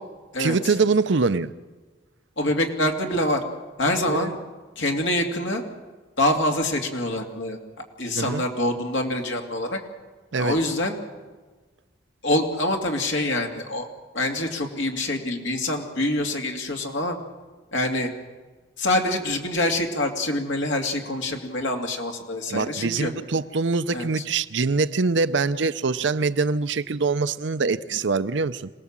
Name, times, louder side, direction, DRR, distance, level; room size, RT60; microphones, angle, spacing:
voice 1, 0.4-1.5 4.1-4.3 8.2-8.4 10.3-10.6 22.5-28.7, right 4 dB, 75° right, 13 dB, 0.7 m, -24 dB
voice 2, 2.4-3.4 3.8-4.4 4.8-5.6 6.2-7.6 8.0-9.8 10.4-11.0 12.2-13.9 14.1-17.2 17.7-18.1 18.8-23.1 23.9-24.1, left 1 dB, 80° left, 2 dB, 2.6 m, -25 dB
26.0 x 18.5 x 7.4 m, 1.4 s
head